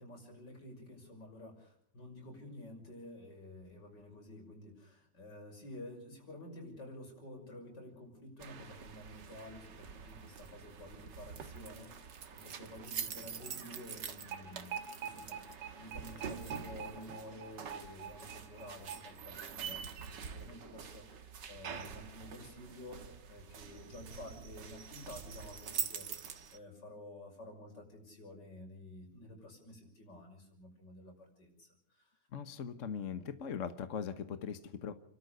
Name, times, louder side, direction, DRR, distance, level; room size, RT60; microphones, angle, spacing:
voice 1, 0.0-14.7 15.0-32.1, left 1 dB, 85° left, 2 dB, 6.8 m, -51 dB
sound 1, 8.4-26.6, right 7 dB, 85° right, 2.1 m, -44 dB
voice 2, 32.3-34.9, left 7 dB, 50° left, 10 dB, 1.4 m, -40 dB
30.0 x 13.5 x 6.8 m, 0.67 s
omnidirectional pair, 1.8 m